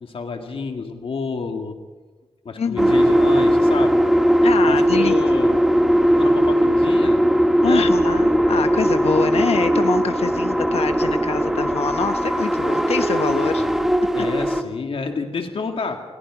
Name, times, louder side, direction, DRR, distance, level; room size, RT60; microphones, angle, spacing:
voice 1, 0.0-1.8 2.4-4.1 4.6-5.6 6.1-7.3 7.6-7.9 13.5-13.8 14.1-16.0, left 4 dB, 60° left, 4 dB, 2.0 m, -29 dB
voice 2, 2.6-2.9 4.4-5.1 7.6-13.7, left 6 dB, 75° left, 8 dB, 1.0 m, -25 dB
sound 1, 2.8-14.6, equal, 5° right, 1.1 m, -18 dB
29.5 x 22.0 x 4.9 m, 1.3 s
wide cardioid pair, 175°, 10 cm